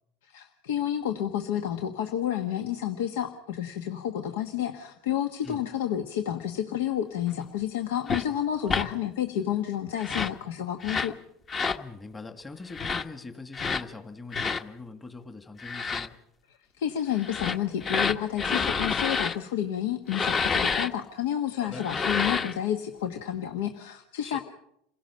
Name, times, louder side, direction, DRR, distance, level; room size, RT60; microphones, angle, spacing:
voice 1, 0.2-11.2 16.5-24.4, left 10 dB, 85° left, 7 dB, 1.4 m, -30 dB
sound 1, 8.1-8.2 8.7-8.9 10.0-10.4 10.8-11.1 11.5-11.8 12.7-13.0 13.5-13.8 14.3-14.6 15.6-16.1 17.2-19.4 20.1-20.9 21.8-22.6, left 5 dB, 30° left, 1.3 m, -28 dB
voice 2, 8.6-8.9 11.8-16.2 21.6-21.9 24.2-24.4, left 3 dB, 15° left, 7 dB, 1.9 m, -42 dB
28.0 x 16.5 x 5.7 m, 0.76 s
supercardioid pair, 105°, 0 cm